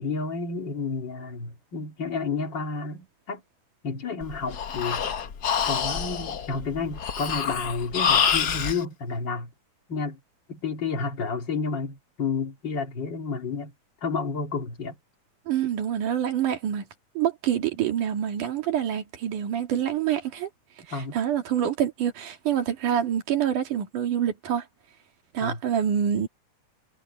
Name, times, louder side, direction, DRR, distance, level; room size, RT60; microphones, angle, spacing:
voice 1, 0.0-3.4 3.8-5.0 5.7-9.5 9.9-10.2 10.5-13.7 14.0-15.0 20.9-21.2 25.4-25.6, left 4 dB, 40° left, 2.7 m, -31 dB
Breathing, 4.2-8.8, left 7 dB, 65° left, 0.9 m, -26 dB
voice 2, 15.5-16.9 17.2-20.5 20.9-24.6 25.3-26.3, right 9 dB, 85° right, 3.8 m, -26 dB
omnidirectional pair, 3.5 m